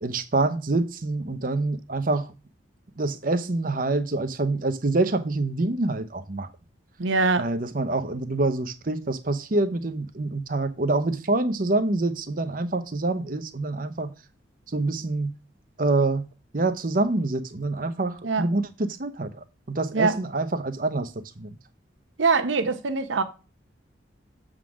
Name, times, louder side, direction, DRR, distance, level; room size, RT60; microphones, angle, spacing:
voice 1, 0.0-2.3 3.0-6.5 7.4-14.1 14.7-15.3 15.8-16.3 16.5-19.3 19.7-21.6, right 2 dB, 45° right, 0.7 m, -26 dB
voice 2, 7.0-7.5 18.2-18.5 19.9-20.2 22.2-23.2, right 4 dB, 80° right, 0.8 m, -23 dB
7.3 x 3.8 x 6.2 m
head